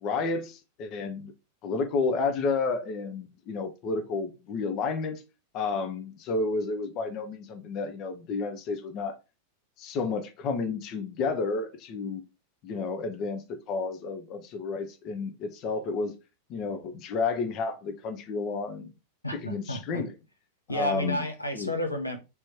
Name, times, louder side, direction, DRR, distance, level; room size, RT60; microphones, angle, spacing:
voice 1, 0.0-1.3 1.6-5.2 5.5-9.2 9.8-12.2 12.6-16.2 16.5-18.9 19.3-20.1 20.7-21.2 21.5-21.7, left 4 dB, 40° left, 0.7 m, -31 dB
voice 2, 19.2-20.0 20.7-22.2, equal, 85° left, 0.8 m, -31 dB
3.4 x 3.1 x 4.2 m
figure-of-eight pair, 90°, 0 cm